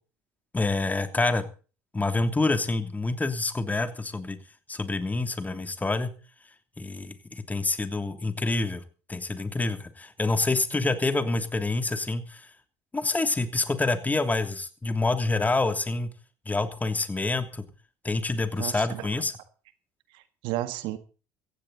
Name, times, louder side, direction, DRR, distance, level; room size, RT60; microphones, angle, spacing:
voice 1, 0.5-1.4 1.9-4.4 4.7-6.1 6.8-8.8 9.1-12.5 12.9-16.1 16.4-17.7 18.0-19.3, left 3 dB, 15° left, 9 dB, 3.0 m, -27 dB
voice 2, 18.6-19.1 20.1-21.0, right 15 dB, 70° right, 12 dB, 1.7 m, -33 dB
17.0 x 15.0 x 4.2 m, 0.37 s
hypercardioid pair, 70°, 9 cm